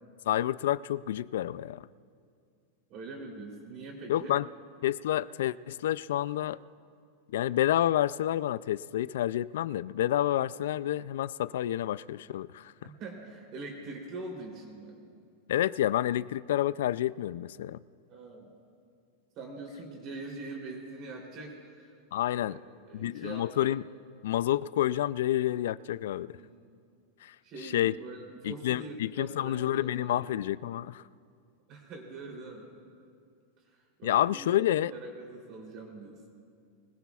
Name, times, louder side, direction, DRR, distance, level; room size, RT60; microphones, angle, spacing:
voice 1, 0.3-1.9 4.1-4.5 4.8-6.6 7.3-12.7 15.5-17.8 22.1-22.6 22.9-23.8 24.2-26.4 27.2-27.4 27.6-28.0 28.4-31.0 34.0-34.9, left 12 dB, 70° left, 18 dB, 0.3 m, -29 dB
voice 2, 2.9-4.3 12.8-15.0 18.1-18.5 19.3-21.9 22.5-22.6 22.9-23.7 26.3-26.5 27.4-30.2 31.7-32.7 33.7-34.6 34.9-36.2, right 2 dB, 30° right, 0 dB, 3.1 m, -43 dB
24.5 x 20.5 x 2.4 m, 2.3 s
supercardioid pair, 170°, 0 cm